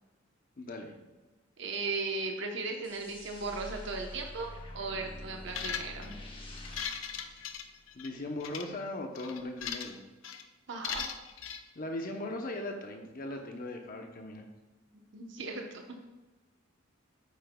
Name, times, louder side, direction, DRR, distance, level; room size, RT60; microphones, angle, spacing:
voice 1, 0.6-1.0 7.9-10.0 11.7-14.4, left 1 dB, 45° left, 3 dB, 0.8 m, -38 dB
voice 2, 1.6-6.2 10.7-11.0 15.1-16.0, right 3 dB, 65° right, 2 dB, 1.0 m, -37 dB
sound 1, 2.8-8.2, left 1 dB, 25° left, 1.2 m, -46 dB
sound 2, 5.5-6.1 6.6-8.1 8.4-8.6 9.2-10.0 10.2-10.4 10.8-11.6, left 7 dB, 85° left, 0.6 m, -38 dB
9.1 x 8.4 x 2.3 m, 1.2 s
head